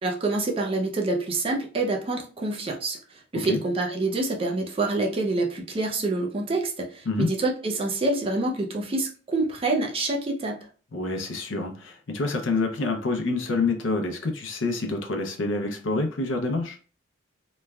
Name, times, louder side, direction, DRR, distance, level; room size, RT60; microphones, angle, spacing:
voice 1, 0.0-10.6, right 2 dB, 30° right, 1 dB, 0.4 m, -27 dB
voice 2, 10.9-16.8, left 3 dB, 70° left, 4 dB, 0.6 m, -27 dB
3.1 x 2.2 x 2.3 m, 0.38 s
head